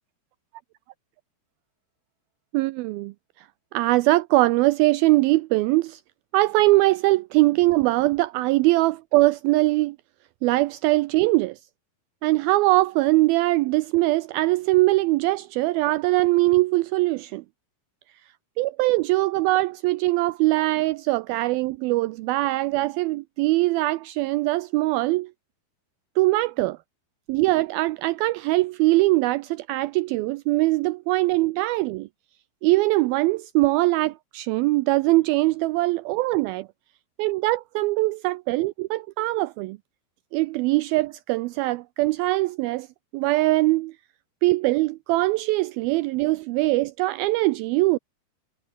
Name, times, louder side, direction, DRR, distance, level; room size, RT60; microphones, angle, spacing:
voice 1, 2.5-3.5 3.7-6.0 6.3-10.0 10.4-11.6 12.2-17.4 18.6-25.3 26.2-26.8 27.3-32.1 32.6-36.7 37.2-39.8 40.3-42.9 43.1-43.9 44.4-48.0, right 20 dB, 85° right, 2.1 m, -22 dB
omnidirectional pair, 4.8 m